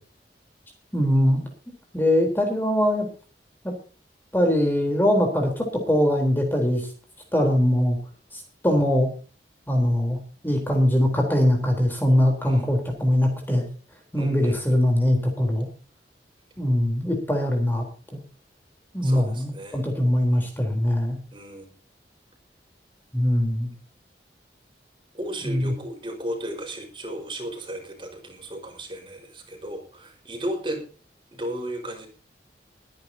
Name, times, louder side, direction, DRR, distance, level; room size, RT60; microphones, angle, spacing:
voice 1, 0.9-1.4 1.9-3.1 3.6-3.7 4.3-6.9 7.3-8.0 8.3-9.1 9.7-10.2 10.4-13.6 14.1-15.7 16.6-17.8 18.9-21.2 23.1-23.7 25.4-25.7, equal, 10° left, 2 dB, 3.7 m, -22 dB
voice 2, 14.2-14.6 19.0-19.8 21.3-21.7 25.1-30.9 31.3-32.1, right 1 dB, 30° right, 2 dB, 4.8 m, -34 dB
23.5 x 10.5 x 2.8 m, 0.37 s
head